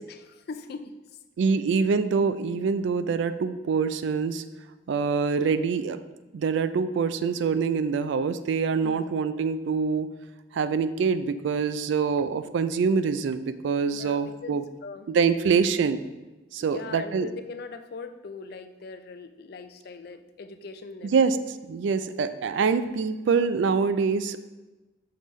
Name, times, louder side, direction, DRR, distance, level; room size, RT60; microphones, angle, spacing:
voice 1, 0.0-1.2 8.8-9.0 13.9-15.1 16.6-21.4, left 4 dB, 50° left, 9 dB, 0.4 m, -41 dB
voice 2, 1.4-4.4 4.9-6.0 6.3-10.1 10.5-14.6 15.1-16.0 16.5-17.3 21.0-24.4, right 5 dB, 70° right, 12 dB, 0.3 m, -25 dB
5.7 x 5.3 x 3.1 m, 1.1 s
head